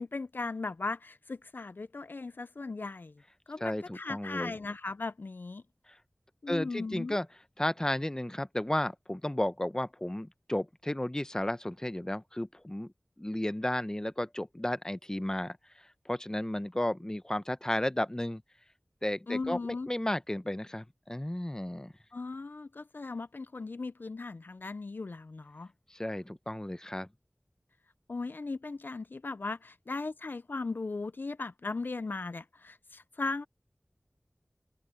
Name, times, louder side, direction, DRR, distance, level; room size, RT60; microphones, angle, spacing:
voice 1, 0.0-3.1 3.5-5.6 6.4-7.1 19.3-19.9 22.1-25.7 28.1-33.5, left 3 dB, 65° left, 0.4 m, -37 dB
voice 2, 3.6-4.5 6.5-7.3 7.6-12.9 13.2-15.6 16.1-18.4 19.0-21.9 25.9-27.1, left 1 dB, 20° left, 0.8 m, -33 dB
open air
wide cardioid pair, 50°, 4 cm